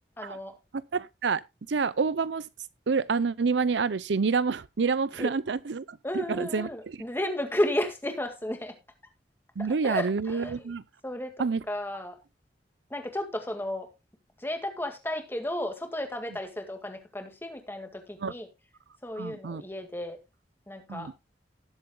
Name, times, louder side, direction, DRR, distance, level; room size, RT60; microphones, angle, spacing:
voice 1, 0.2-0.6 5.2-5.3 6.0-8.8 9.8-10.5 11.0-12.2 12.9-13.9 14.4-18.5 19.0-20.2 20.7-21.1, left 1 dB, 15° left, 1.9 m, -33 dB
voice 2, 0.9-1.4 1.7-2.4 2.9-7.0 9.6-10.8 11.4-11.6 18.2-18.3 19.2-19.6 20.9-21.1, right 5 dB, 85° right, 0.6 m, -28 dB
18.5 x 7.7 x 2.2 m
head